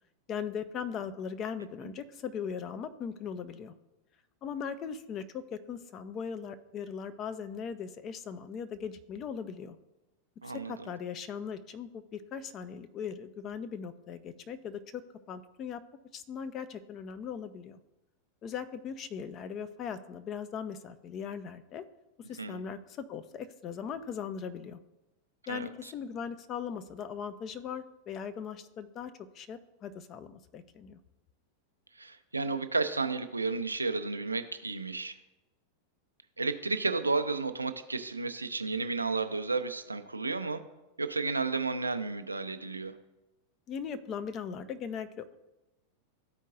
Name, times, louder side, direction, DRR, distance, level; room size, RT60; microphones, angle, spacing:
voice 1, 0.3-3.7 4.4-9.8 10.4-15.0 15.3-15.8 16.1-17.8 18.4-21.8 22.3-24.8 25.5-31.0 43.7-45.4, left 7 dB, 30° left, 11 dB, 0.5 m, -39 dB
voice 2, 10.4-10.9 22.4-22.6 25.5-25.9 32.0-35.2 36.4-40.6 41.0-42.9, right 3 dB, 80° right, 9 dB, 0.5 m, -32 dB
13.0 x 4.5 x 2.4 m, 1.0 s
figure-of-eight pair, 90°, 0 cm